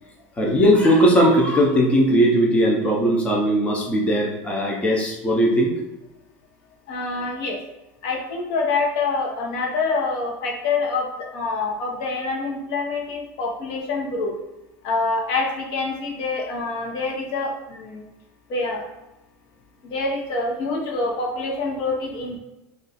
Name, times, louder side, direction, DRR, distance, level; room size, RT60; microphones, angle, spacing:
voice 1, 0.4-5.7, equal, 15° left, -2 dB, 0.6 m, -18 dB
voice 2, 6.9-7.6 8.0-14.3 14.8-18.0 18.5-18.9 19.8-22.4, left 3 dB, 65° left, 0 dB, 0.9 m, -26 dB
2.4 x 2.3 x 4.0 m, 0.95 s
supercardioid pair, 130°, 8 cm